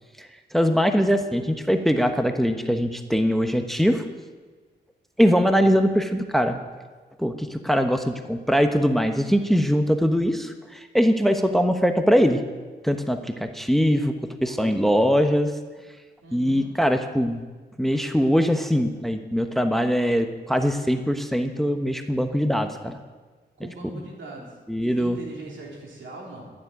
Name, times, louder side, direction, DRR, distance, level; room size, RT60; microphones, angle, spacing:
voice 1, 0.2-4.0 5.2-6.6 7.2-12.4 12.8-14.1 14.4-15.5 16.3-17.4 17.8-23.0 24.7-25.2, equal, ahead, 7 dB, 1.0 m, -22 dB
voice 2, 14.6-15.1 16.2-16.7 23.6-26.5, right 2 dB, 85° right, -1 dB, 3.5 m, -41 dB
12.5 x 7.4 x 9.3 m, 1.4 s
cardioid pair, 65°, 19 cm